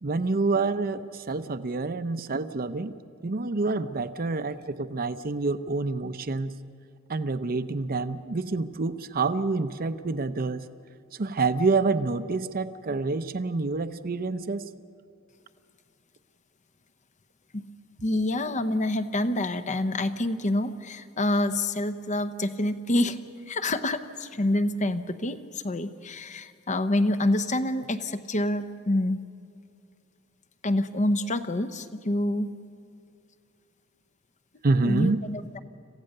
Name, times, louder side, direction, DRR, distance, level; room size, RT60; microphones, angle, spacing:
voice 1, 0.0-6.6 7.1-10.6 11.1-14.7 34.6-35.2, right 3 dB, 45° right, 11 dB, 0.7 m, -27 dB
voice 2, 18.0-23.2 23.5-29.2 30.6-32.5 34.8-35.6, left 1 dB, 35° left, 11 dB, 0.8 m, -27 dB
27.0 x 15.5 x 6.7 m, 2.4 s
head